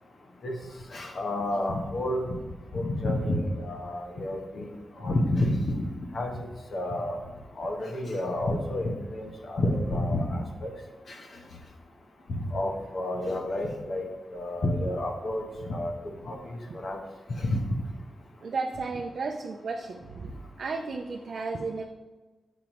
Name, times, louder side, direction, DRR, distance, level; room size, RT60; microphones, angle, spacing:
voice 1, 0.9-2.2 2.7-4.7 5.0-5.6 6.1-6.3 6.7-7.2 7.6-10.7 12.4-14.0 14.3-15.9 16.3-16.4 16.8-17.0 17.4-17.6, left 1 dB, 55° left, 2 dB, 1.0 m, -29 dB
voice 2, 18.4-20.3 20.6-21.8, right 4 dB, 60° right, 3 dB, 0.5 m, -33 dB
6.9 x 5.9 x 3.0 m, 1.2 s
wide cardioid pair, 120°, 0 cm